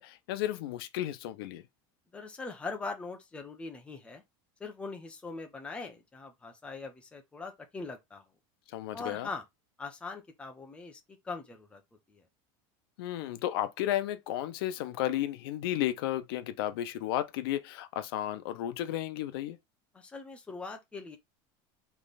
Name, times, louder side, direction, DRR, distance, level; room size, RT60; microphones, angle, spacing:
voice 1, 0.0-1.6 8.7-9.3 13.0-19.6, left 13 dB, 80° left, 0.7 m, -33 dB
voice 2, 2.1-4.2 4.6-8.2 8.9-9.4 9.8-11.8 12.1-12.2 19.9-21.2, left 4 dB, 10° left, 0.8 m, -41 dB
3.5 x 3.2 x 4.0 m
cardioid pair, 165°, 12 cm